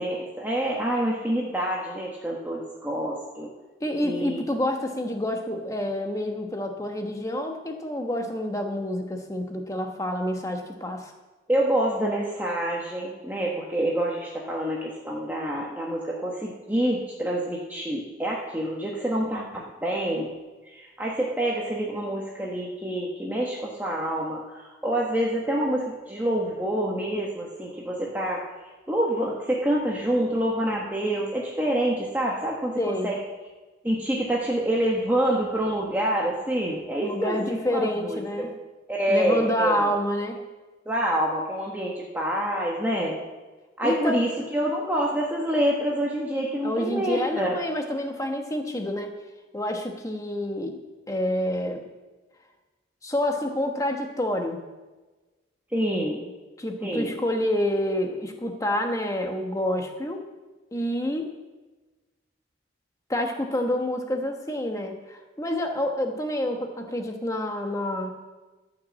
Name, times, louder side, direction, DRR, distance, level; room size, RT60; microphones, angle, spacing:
voice 1, 0.0-3.5 4.0-4.4 11.5-20.3 20.7-28.4 28.9-33.2 33.8-38.5 38.9-39.9 40.9-43.2 43.8-47.6 55.7-56.2 56.8-57.1, right 1 dB, 10° right, -3 dB, 1.2 m, -27 dB
voice 2, 3.8-11.1 32.8-33.1 37.0-38.5 39.1-40.4 43.8-44.2 46.6-49.1 49.5-50.8 51.1-51.8 53.0-54.6 56.6-60.2 60.7-61.3 63.1-68.1, left 1 dB, 15° left, 4 dB, 1.1 m, -28 dB
14.0 x 6.0 x 7.4 m, 1.2 s
head